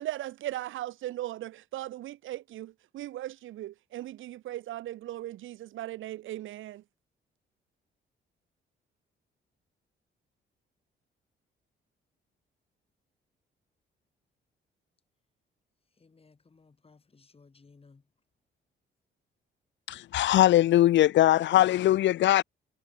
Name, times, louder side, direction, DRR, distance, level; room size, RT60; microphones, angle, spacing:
voice 1, 0.0-6.8, right 14 dB, 80° right, 1.3 m, -38 dB
voice 2, 16.0-18.0, left 4 dB, 30° left, 5.5 m, -59 dB
voice 3, 19.9-22.4, left 13 dB, 70° left, 0.6 m, -21 dB
cardioid pair, 90°, 20 cm